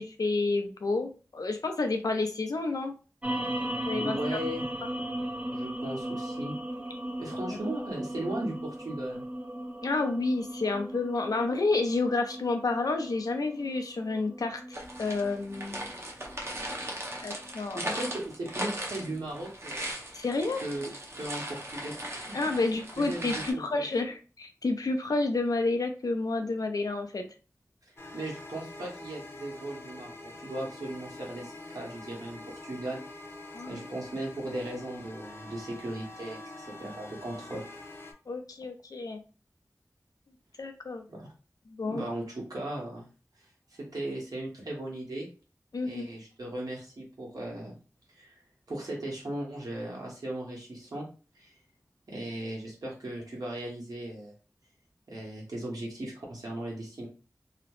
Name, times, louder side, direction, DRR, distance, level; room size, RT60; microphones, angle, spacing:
voice 1, 0.0-2.9 3.9-4.4 9.8-15.9 17.2-17.9 20.1-20.6 22.3-27.2 33.5-33.8 38.3-39.2 40.6-41.0 41.7-42.0 45.7-46.1, left 3 dB, 90° left, 5 dB, 0.5 m, -30 dB
sound 1, 3.2-17.8, right 1 dB, 20° right, 0.5 m, -37 dB
voice 2, 4.0-4.6 5.5-6.5 7.2-9.2 17.7-19.9 20.6-20.9 21.2-23.9 28.1-33.0 33.7-37.6 41.1-41.3 41.8-43.1 43.8-45.3 45.8-47.8 48.1-48.4 48.7-51.1 51.3-51.5 52.1-54.3 55.1-57.1, right 1 dB, 85° right, -2 dB, 1.1 m, -37 dB
sound 2, 14.7-23.5, right 1 dB, 45° right, 0.7 m, -38 dB
sound 3, 28.0-38.1, left 2 dB, 40° left, 0.5 m, -45 dB
2.8 x 2.0 x 2.9 m, 0.35 s
wide cardioid pair, 55°, 6 cm